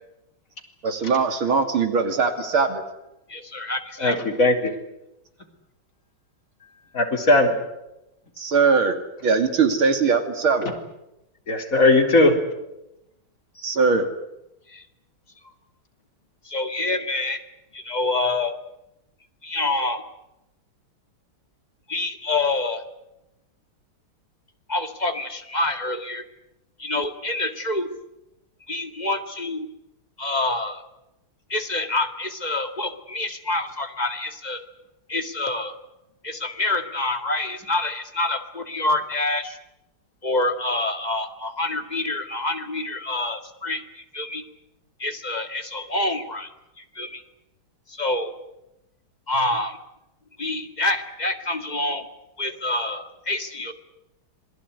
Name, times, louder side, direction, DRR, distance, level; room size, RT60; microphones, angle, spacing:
voice 1, 0.8-2.8 8.4-10.7 13.6-14.1, right 5 dB, 80° right, 7 dB, 3.3 m, -21 dB
voice 2, 3.3-4.2 8.4-8.5 13.6-13.7 14.7-14.8 15.4-15.5 16.4-17.4 17.7-18.5 19.4-20.0 21.9-22.8 24.7-26.2 26.8-27.9 28.7-29.7 30.2-30.8 31.5-34.6 35.1-35.8 36.2-39.6 40.2-44.4 45.0-46.5 46.8-47.2 47.9-48.3 49.3-49.8 50.4-52.1 52.4-53.7, left 2 dB, 20° left, 6 dB, 2.0 m, -27 dB
voice 3, 4.0-4.7 7.0-7.5 11.5-12.3, left 2 dB, 40° left, 2 dB, 4.3 m, -18 dB
27.0 x 19.5 x 9.6 m, 0.90 s
omnidirectional pair, 2.2 m